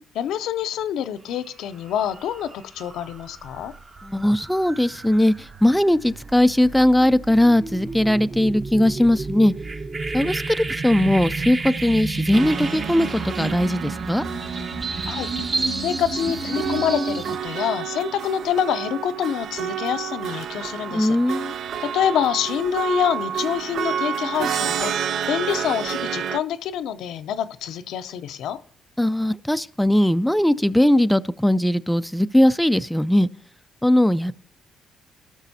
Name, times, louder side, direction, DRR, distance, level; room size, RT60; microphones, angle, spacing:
voice 1, 0.1-3.7 15.1-21.4 21.8-28.6, left 9 dB, 85° left, 0.5 m, -26 dB
sound 1, 1.3-1.5 1.9-17.4, right 3 dB, 40° right, 1.0 m, -31 dB
voice 2, 4.0-9.5 10.1-14.2 20.9-21.5 29.0-33.3 33.8-34.3, left 1 dB, 5° left, 0.3 m, -19 dB
sound 2, 12.3-26.4, right 8 dB, 65° right, 0.4 m, -30 dB
18.5 x 6.2 x 2.7 m
cardioid pair, 90°, 0 cm